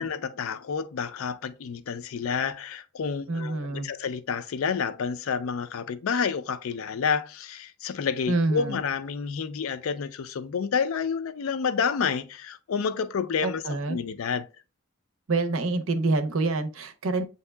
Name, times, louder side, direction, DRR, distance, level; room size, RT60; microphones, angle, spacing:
voice 1, 0.0-13.6 13.9-14.5, left 6 dB, 75° left, 0.4 m, -29 dB
voice 2, 3.3-3.9 8.3-8.8 13.4-14.0 15.3-17.2, right 2 dB, 75° right, 0.6 m, -26 dB
7.7 x 2.7 x 2.2 m
head